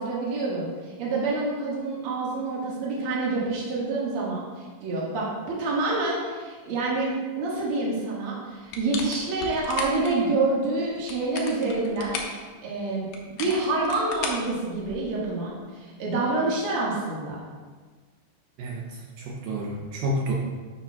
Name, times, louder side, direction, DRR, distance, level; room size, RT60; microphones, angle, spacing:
voice 1, 0.0-17.4, right 3 dB, 50° right, -5 dB, 1.7 m, -27 dB
sound 1, 8.7-10.2 10.9-12.4 13.1-15.1, left 4 dB, 85° left, 1.7 m, -35 dB
voice 2, 18.6-20.3, right 1 dB, 75° right, -2 dB, 2.0 m, -30 dB
9.8 x 6.8 x 2.3 m, 1.4 s
omnidirectional pair, 4.7 m